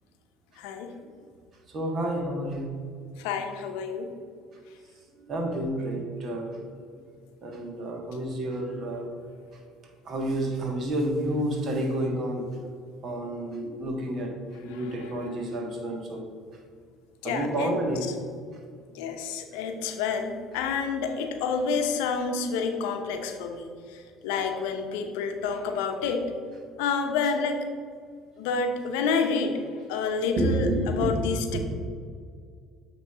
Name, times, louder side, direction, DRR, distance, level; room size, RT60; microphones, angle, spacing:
voice 1, 0.6-0.9 3.2-4.1 14.7-15.3 17.2-17.7 18.9-26.3 26.8-27.6 28.4-29.6 29.9-30.7 31.0-31.6, left 5 dB, 80° left, 5 dB, 0.7 m, -29 dB
voice 2, 1.7-2.9 5.3-6.6 7.4-9.1 10.0-12.5 13.0-16.3 17.2-18.1 24.3-24.4 30.4-31.2 31.5-31.6, right 1 dB, 50° right, 2 dB, 1.5 m, -30 dB
8.3 x 3.2 x 4.9 m, 2.1 s
hypercardioid pair, 75°, 0 cm